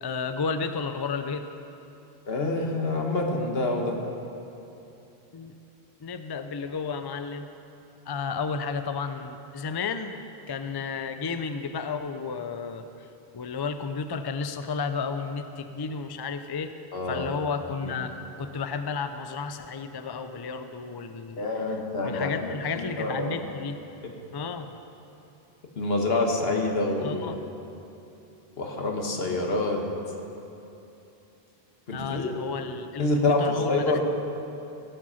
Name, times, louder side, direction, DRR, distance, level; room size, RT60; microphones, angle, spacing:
voice 1, 0.0-1.5 5.3-5.5 6.0-7.5 8.1-10.2 10.5-13.1 13.3-16.7 17.1-21.4 22.0-23.8 24.3-24.7 27.0-27.4 31.9-34.0, left 5 dB, 40° left, 9 dB, 0.3 m, -32 dB
voice 2, 2.3-4.0 16.9-17.3 17.8-17.9 21.4-23.4 25.8-27.3 28.6-29.8 31.9-32.3 33.0-34.0, left 2 dB, 70° left, 2 dB, 1.6 m, -27 dB
17.0 x 7.6 x 5.7 m, 2.9 s
omnidirectional pair, 1.1 m